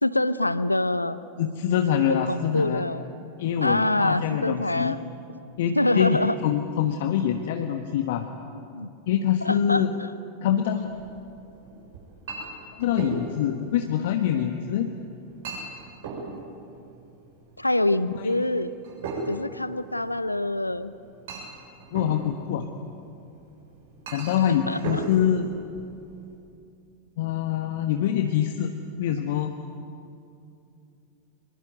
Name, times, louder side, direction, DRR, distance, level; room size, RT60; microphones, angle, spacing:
voice 1, 0.0-1.2 2.1-3.0 3.6-5.0 5.8-6.3 8.7-8.9 9.4-10.1 17.6-18.7 19.3-20.9 24.4-25.0, left 1 dB, 85° left, 16 dB, 0.8 m, -25 dB
voice 2, 1.4-2.8 3.4-5.0 5.6-8.3 9.1-9.9 10.4-10.9 12.7-14.9 18.0-18.4 21.9-22.7 24.1-25.5 27.2-29.6, left 9 dB, 55° left, 6 dB, 1.3 m, -25 dB
Chink clink, 10.8-26.3, right 3 dB, 60° right, 7.1 m, -39 dB
24.0 x 21.5 x 9.4 m, 2.6 s
figure-of-eight pair, 90°, 0 cm